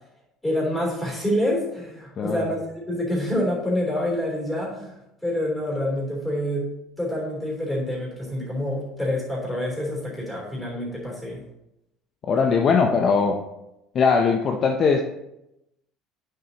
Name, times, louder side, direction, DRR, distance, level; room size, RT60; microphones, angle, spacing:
voice 1, 0.4-2.6 2.9-4.9 5.2-6.6 7.0-11.4, left 1 dB, 5° left, -3 dB, 3.2 m, -27 dB
voice 2, 12.2-13.4 13.9-15.0, left 5 dB, 35° left, 3 dB, 0.6 m, -20 dB
8.9 x 6.7 x 2.9 m, 0.87 s
cardioid pair, 140°, 0 cm